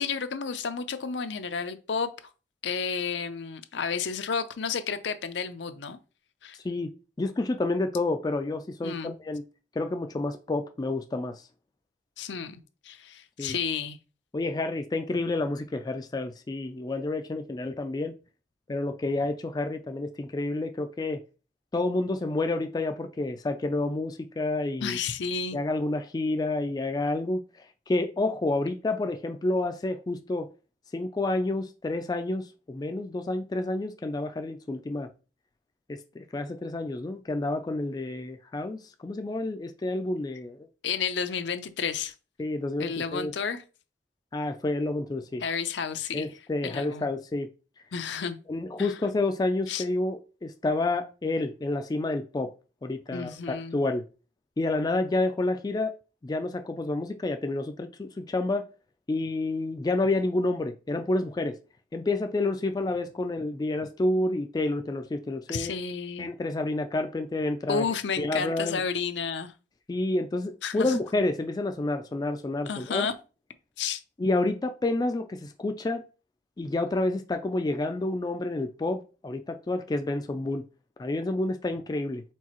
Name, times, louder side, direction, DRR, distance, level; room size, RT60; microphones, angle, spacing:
voice 1, 0.0-2.1 2.6-6.0 6.4-6.6 8.8-9.1 12.2-12.6 12.8-14.0 24.8-25.6 40.8-42.1 42.8-43.6 45.4-46.3 46.6-47.1 47.9-48.4 48.8-48.9 49.7-49.8 53.1-53.8 65.5-66.3 67.7-69.5 70.6-70.9 72.7-73.1 73.8-74.0, left 6 dB, 75° left, 0.5 m, -31 dB
voice 2, 7.2-9.4 9.8-11.4 13.4-13.6 14.3-18.1 18.7-21.2 21.7-25.0 25.5-27.4 27.9-30.5 30.9-35.1 35.9-40.7 42.4-43.3 44.3-45.4 46.1-47.5 48.5-52.5 52.8-54.0 54.6-55.9 56.2-58.6 59.1-61.6 61.9-65.7 66.2-67.9 68.2-68.8 69.9-73.1 74.2-76.0 76.6-80.6 81.0-82.2, left 2 dB, 20° left, 0.3 m, -29 dB
4.5 x 3.9 x 3.0 m
head